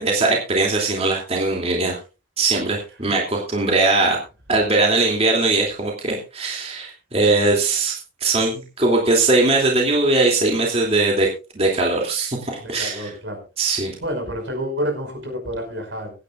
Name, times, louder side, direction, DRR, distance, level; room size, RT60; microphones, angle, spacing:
voice 1, 0.0-2.0 2.4-4.2 4.5-11.3 11.5-13.1 13.6-13.9, right 3 dB, 30° right, 0 dB, 2.8 m, -20 dB
voice 2, 12.6-13.4 14.0-16.1, equal, 80° right, 3 dB, 5.5 m, -28 dB
24.5 x 9.8 x 2.5 m, 0.31 s
head